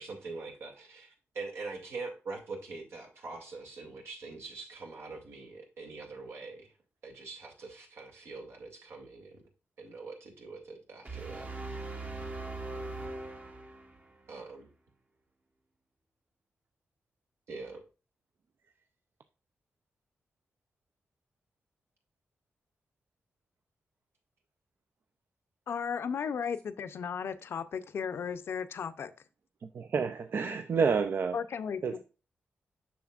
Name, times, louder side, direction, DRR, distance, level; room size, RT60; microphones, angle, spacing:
voice 1, 0.0-6.7 7.0-9.4 9.8-11.8 14.3-14.7 17.5-17.8, right 3 dB, 85° right, 2.3 m, -43 dB
sound 1, 11.0-14.2, right 2 dB, 35° right, 0.9 m, -40 dB
voice 2, 25.7-29.1 31.3-32.0, left 7 dB, 70° left, 0.5 m, -35 dB
voice 3, 29.7-31.4 31.8-32.0, right 5 dB, 60° right, 0.4 m, -29 dB
7.1 x 6.1 x 2.4 m
cardioid pair, 95°, 4 cm